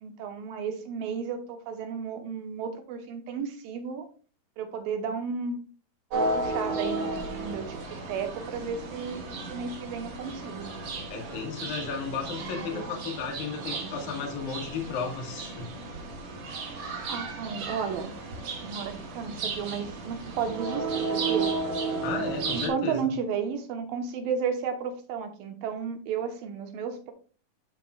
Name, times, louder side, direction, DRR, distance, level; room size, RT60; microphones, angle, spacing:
voice 1, 0.0-4.1 4.6-5.6 6.1-10.7 12.4-12.9 13.7-14.1 17.1-18.1 18.6-21.5 22.5-27.1, right 6 dB, 80° right, 6 dB, 2.8 m, -33 dB
sound 1, 6.1-22.7, right 3 dB, 55° right, 2.6 m, -34 dB
voice 2, 11.1-15.7 22.0-23.1, left 5 dB, 60° left, 1 dB, 3.0 m, -34 dB
13.5 x 5.2 x 2.3 m, 0.38 s
omnidirectional pair, 4.2 m